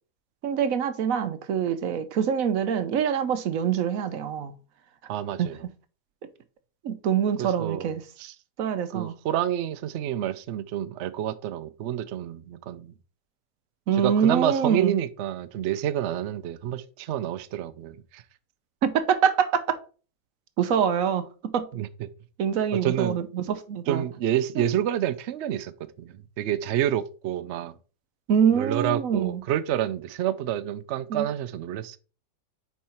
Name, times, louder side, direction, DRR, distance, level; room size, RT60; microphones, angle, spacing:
voice 1, 0.4-4.6 5.4-5.5 6.8-8.0 8.6-9.1 13.9-15.0 18.8-19.8 20.6-21.7 22.4-24.0 28.3-29.4 31.1-31.3, right 8 dB, 65° right, 0.9 m, -25 dB
voice 2, 5.1-5.6 7.4-7.9 8.2-8.3 8.9-12.9 13.9-18.2 21.7-22.1 22.8-23.2 23.9-25.7 26.0-27.7 28.5-32.0, right 11 dB, 85° right, 0.6 m, -28 dB
5.2 x 4.6 x 4.3 m
omnidirectional pair, 1.8 m